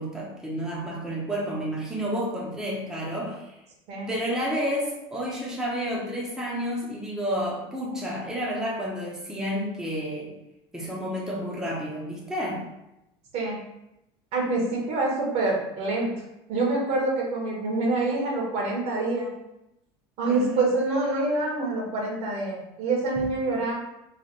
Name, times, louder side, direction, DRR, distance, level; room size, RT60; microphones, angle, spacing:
voice 1, 0.0-3.6 4.1-10.3 10.7-12.7 20.3-20.7 23.2-23.3, equal, 5° right, -5 dB, 0.9 m, -30 dB
voice 2, 14.3-16.1 16.5-19.3 20.2-23.7, right 2 dB, 55° right, -2 dB, 1.3 m, -26 dB
3.3 x 2.5 x 4.0 m, 0.89 s
supercardioid pair, 110°, 13 cm